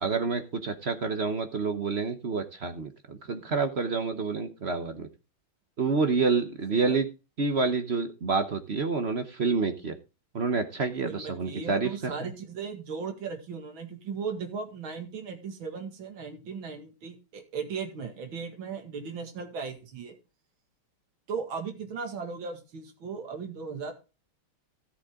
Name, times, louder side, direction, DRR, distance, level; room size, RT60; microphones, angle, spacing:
voice 1, 0.0-5.1 5.8-7.1 7.4-10.0 10.3-11.9 12.2-12.3, right 4 dB, 50° right, 8 dB, 0.8 m, -28 dB
voice 2, 11.0-20.1 21.3-23.9, right 5 dB, 70° right, 5 dB, 2.7 m, -37 dB
13.5 x 7.8 x 3.7 m, 0.30 s
omnidirectional pair, 2.3 m